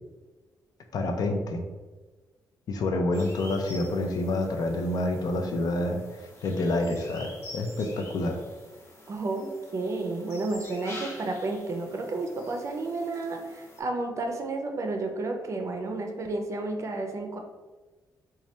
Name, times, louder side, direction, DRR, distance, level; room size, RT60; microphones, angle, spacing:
voice 1, 0.9-1.6 2.7-6.0 6.4-8.4, left 2 dB, 65° left, 4 dB, 0.5 m, -28 dB
sound 1, 3.1-13.8, left 1 dB, 40° left, 0.9 m, -47 dB
voice 2, 9.1-17.4, right 2 dB, 45° right, 4 dB, 0.5 m, -31 dB
3.1 x 2.3 x 4.1 m, 1.3 s
wide cardioid pair, 140°, 7 cm